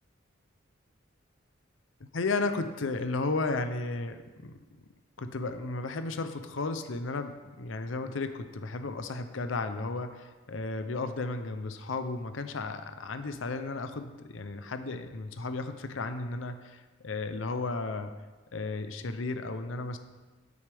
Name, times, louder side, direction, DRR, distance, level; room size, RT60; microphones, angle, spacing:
voice 1, 2.1-4.6 5.2-18.1 18.5-20.0, left 3 dB, 80° left, 9 dB, 0.6 m, -34 dB
9.8 x 8.7 x 3.5 m, 1.2 s
head